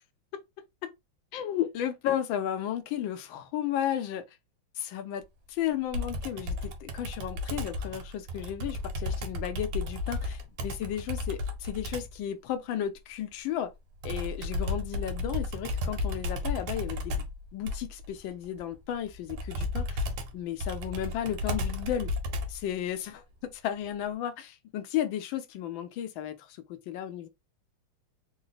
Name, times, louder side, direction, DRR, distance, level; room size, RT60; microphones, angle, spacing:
voice 1, 1.3-4.2 4.8-5.2 5.5-13.7 14.0-17.2 17.5-20.1 20.3-22.1 22.5-27.3, left 10 dB, 75° left, 1.2 m, -34 dB
Computer keyboard, 5.9-12.2 14.0-22.7, left 2 dB, 90° right, 1.7 m, -33 dB
3.9 x 2.1 x 3.9 m
omnidirectional pair, 2.3 m